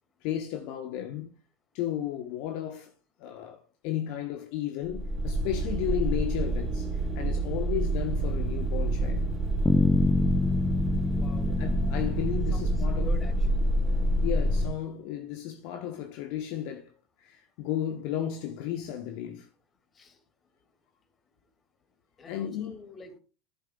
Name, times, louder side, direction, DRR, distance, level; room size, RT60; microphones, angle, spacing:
voice 1, 0.2-1.3 1.7-2.9 3.2-6.9 7.1-9.3 11.5-13.1 14.2-16.9 17.2-19.5 22.3-22.8, left 11 dB, 55° left, 1.2 m, -34 dB
sound 1, 4.9-14.7, right 1 dB, 20° right, 4.0 m, -28 dB
Bass guitar, 9.7-13.7, left 3 dB, 10° left, 0.7 m, -27 dB
voice 2, 11.1-11.6 12.5-13.6 19.9-20.2 22.2-23.2, left 3 dB, 25° left, 2.4 m, -46 dB
12.0 x 11.0 x 2.4 m
hypercardioid pair, 85°, 0 cm